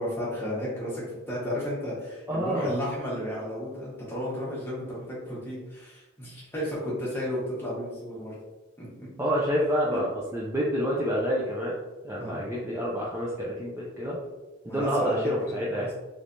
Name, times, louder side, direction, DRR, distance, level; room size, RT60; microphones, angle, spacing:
voice 1, 0.0-8.3 8.8-8.9 9.9-10.0 12.2-12.5 14.7-15.7, equal, 10° left, -6 dB, 1.0 m, -33 dB
voice 2, 2.3-2.8 9.2-11.7 12.0-14.2 14.6-15.9, equal, 10° right, -6 dB, 0.4 m, -28 dB
3.2 x 3.2 x 2.6 m, 1.1 s
head